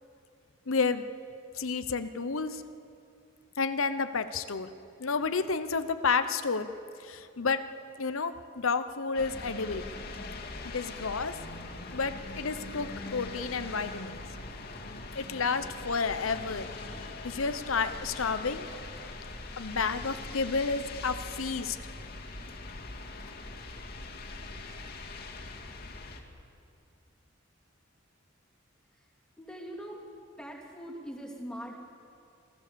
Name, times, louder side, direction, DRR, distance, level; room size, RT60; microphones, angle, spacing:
voice 1, 0.7-1.0 1.6-2.6 3.6-4.7 5.0-6.7 7.0-7.6 8.0-9.8 10.6-11.3 11.9-14.2 15.1-18.7 19.6-21.8, left 4 dB, 80° left, 10 dB, 0.9 m, -31 dB
sound 1, 9.1-26.2, left 3 dB, 50° left, 2.3 m, -42 dB
voice 2, 29.4-30.1 30.4-31.7, equal, 5° left, -2 dB, 3.0 m, -42 dB
27.0 x 17.0 x 7.0 m, 2.5 s
head